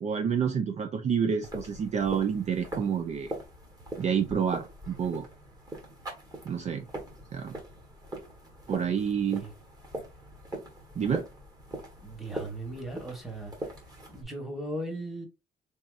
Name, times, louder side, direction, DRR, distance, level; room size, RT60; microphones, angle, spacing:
voice 1, 0.0-3.3 4.0-5.3 6.4-6.9 7.3-7.5 8.7-9.4 11.0-11.2, right 7 dB, 40° right, 0.4 m, -28 dB
sound 1, 1.4-14.2, right 1 dB, 20° right, 1.3 m, -42 dB
voice 2, 12.0-13.7 14.1-15.3, right 1 dB, ahead, 1.2 m, -38 dB
4.1 x 3.5 x 2.4 m
cardioid pair, 155°, 17 cm